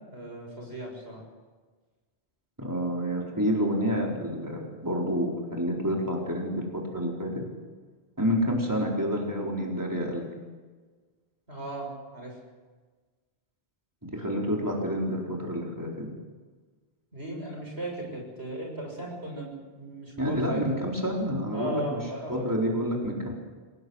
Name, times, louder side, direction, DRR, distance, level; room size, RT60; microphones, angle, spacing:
voice 1, 0.1-1.2 11.5-12.3 17.1-19.5 19.8-20.9 21.5-22.7, right 1 dB, 90° right, 0 dB, 7.3 m, -37 dB
voice 2, 2.6-7.4 8.2-10.3 14.0-16.1 20.2-22.0 22.3-23.3, equal, 20° right, -2 dB, 4.6 m, -28 dB
26.5 x 18.5 x 8.1 m, 1.4 s
omnidirectional pair, 1.0 m